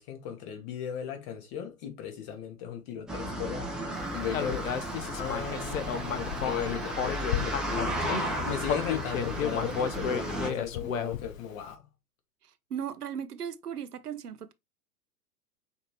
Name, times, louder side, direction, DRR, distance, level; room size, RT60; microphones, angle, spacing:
voice 1, 0.0-3.7 4.1-4.7 5.2-8.0 8.4-11.9, left 8 dB, 35° left, 1.3 m, -37 dB
sound 1, 3.1-10.5, right 1 dB, ahead, 0.5 m, -34 dB
Human voice, 4.3-8.2 8.6-11.4, left 7 dB, 60° left, 0.8 m, -32 dB
voice 2, 12.7-14.5, right 8 dB, 80° right, 0.6 m, -36 dB
5.8 x 2.8 x 2.9 m
figure-of-eight pair, 100°, 46 cm